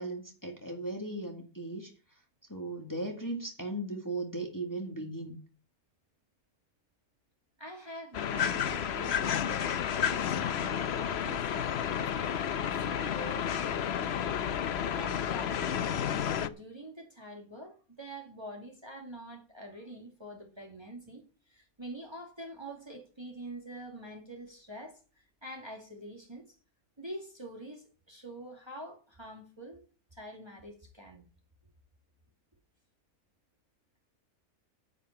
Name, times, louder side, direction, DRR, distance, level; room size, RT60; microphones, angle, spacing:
voice 1, 0.0-2.2 2.5-5.4, right 2 dB, 15° left, 2.0 m, -37 dB
voice 2, 7.6-12.2 12.7-13.5 14.9-25.0 25.4-26.6 27.0-29.8 30.1-31.2, right 1 dB, 20° right, 2.1 m, -45 dB
sound 1, 8.1-16.5, left 8 dB, 55° left, 0.8 m, -31 dB
10.0 x 5.7 x 8.6 m
omnidirectional pair, 1.5 m